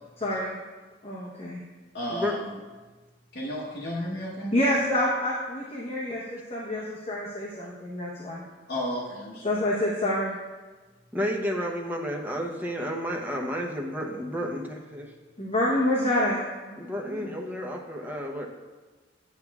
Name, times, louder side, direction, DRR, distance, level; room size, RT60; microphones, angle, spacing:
voice 1, 0.2-0.5 1.0-1.6 4.5-8.4 9.4-10.3 15.4-17.3, left 1 dB, 35° left, -4 dB, 0.9 m, -27 dB
voice 2, 1.9-2.4 3.3-4.5 8.7-9.7, left 1 dB, 60° left, -7 dB, 1.1 m, -33 dB
voice 3, 11.1-15.1 16.8-18.5, equal, 10° right, 0 dB, 0.8 m, -31 dB
8.8 x 8.3 x 2.3 m, 1.3 s
head